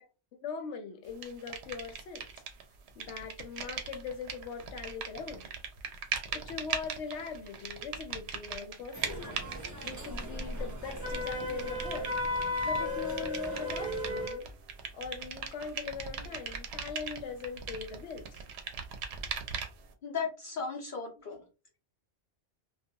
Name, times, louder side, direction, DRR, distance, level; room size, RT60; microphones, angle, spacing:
voice 1, 0.4-2.3 2.9-5.5 6.3-12.2 12.6-14.5 14.9-18.4, left 5 dB, 85° left, 0.9 m, -41 dB
sound 1, 1.2-2.6 2.9-19.9, right 6 dB, 75° right, 0.8 m, -40 dB
sound 2, 8.9-14.3, left 1 dB, 30° right, 0.3 m, -40 dB
Wind instrument woodwind instrument, 11.0-14.4, left 2 dB, 5° right, 0.7 m, -35 dB
voice 2, 20.0-21.4, left 5 dB, 55° left, 0.7 m, -36 dB
2.3 x 2.2 x 2.7 m
omnidirectional pair, 1.1 m